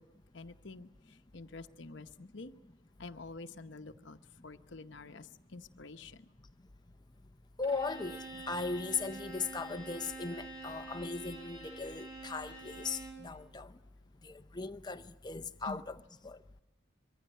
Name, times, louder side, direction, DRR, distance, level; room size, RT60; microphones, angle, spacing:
voice 1, 0.3-0.9 1.3-2.5 3.0-4.2 4.4-6.2 15.7-15.8, left 3 dB, 65° left, 0.9 m, -47 dB
voice 2, 7.6-13.7 14.2-16.4, left 4 dB, 20° left, 0.7 m, -38 dB
Bowed string instrument, 7.6-13.3, right 2 dB, 25° right, 7.1 m, -47 dB
23.0 x 15.5 x 9.3 m
head